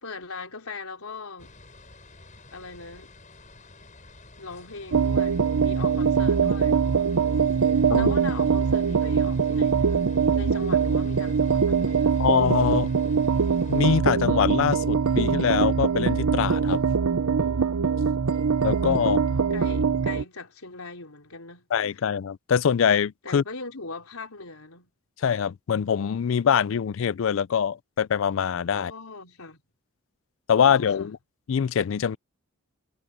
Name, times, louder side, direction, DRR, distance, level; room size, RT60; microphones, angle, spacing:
voice 1, 0.0-1.6 2.5-3.1 4.4-7.4 7.6-10.1 10.3-12.2 19.0-21.7 23.2-24.9 28.7-29.6 30.6-31.1, left 3 dB, 80° left, 3.6 m, -40 dB
sound 1, 1.4-13.9, left 2 dB, 35° left, 6.9 m, -50 dB
sound 2, 4.9-20.2, right 6 dB, 90° right, 0.7 m, -23 dB
voice 2, 12.2-12.9 13.7-16.8 18.6-19.2 21.7-23.4 25.2-28.9 30.5-31.2 31.5-32.2, left 7 dB, 60° left, 0.4 m, -23 dB
head